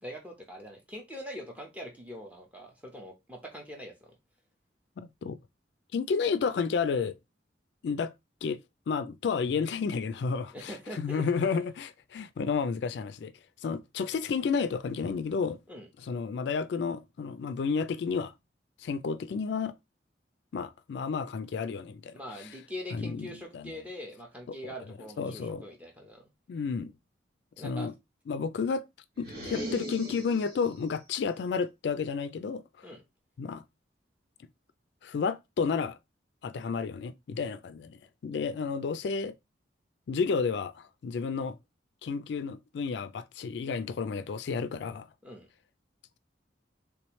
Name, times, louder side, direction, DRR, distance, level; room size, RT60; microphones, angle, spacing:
voice 1, 0.0-4.1 10.5-11.3 15.7-15.9 22.1-26.3 27.6-27.9 32.8-33.0 45.2-45.5, equal, 10° right, 1.0 m, -43 dB
voice 2, 5.0-5.4 5.9-7.2 7.8-8.1 8.4-8.6 8.9-13.3 13.6-15.6 16.0-18.3 18.8-19.7 20.5-22.1 22.4-22.5 22.9-23.3 23.5-23.7 24.5-24.6 25.2-25.6 26.5-26.9 27.6-27.9 28.3-28.9 29.2-32.9 33.4-33.6 35.0-36.0 36.4-39.3 40.1-41.6 42.0-45.1, left 5 dB, 70° left, 0.3 m, -31 dB
sound 1, 29.2-30.8, right 1 dB, 55° right, 1.4 m, -38 dB
3.4 x 3.1 x 3.0 m
head